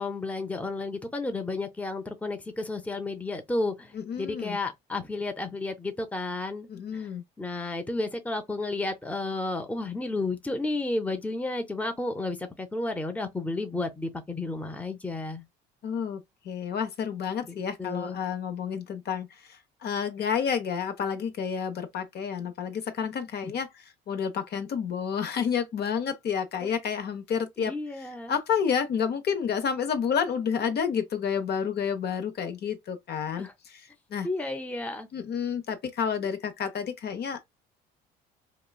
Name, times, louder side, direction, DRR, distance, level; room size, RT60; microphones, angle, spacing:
voice 1, 0.0-7.1 7.4-15.4 17.5-18.2 23.4-23.5 26.6-26.7 27.6-28.3 33.4-33.5 34.2-35.1, left 2 dB, 5° left, 0.7 m, -32 dB
voice 2, 3.9-4.6 6.7-7.2 15.8-34.3 35.1-37.5, left 7 dB, 50° left, 0.7 m, -30 dB
2.9 x 2.3 x 2.2 m
supercardioid pair, 70°, 21 cm